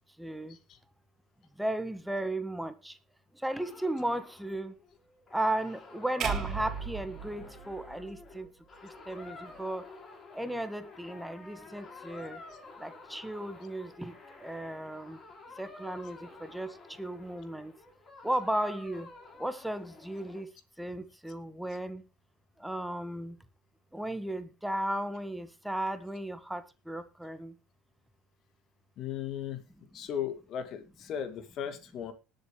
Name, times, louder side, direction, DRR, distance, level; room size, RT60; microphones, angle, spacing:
voice 1, 0.2-0.6 1.6-3.0 3.4-4.8 5.3-8.5 9.1-9.8 10.3-12.4 12.8-14.1 14.4-15.2 15.6-17.7 18.2-19.1 19.4-20.5 20.8-22.0 22.6-23.4 23.9-27.5, right 1 dB, 5° right, 1.6 m, -35 dB
sound 1, 3.5-20.4, left 3 dB, 35° left, 4.7 m, -51 dB
sound 2, 6.2-8.5, right 7 dB, 50° right, 3.3 m, -36 dB
voice 2, 29.0-29.6 29.9-32.1, left 9 dB, 55° left, 2.4 m, -37 dB
19.5 x 7.7 x 3.3 m
supercardioid pair, 90°, 0 cm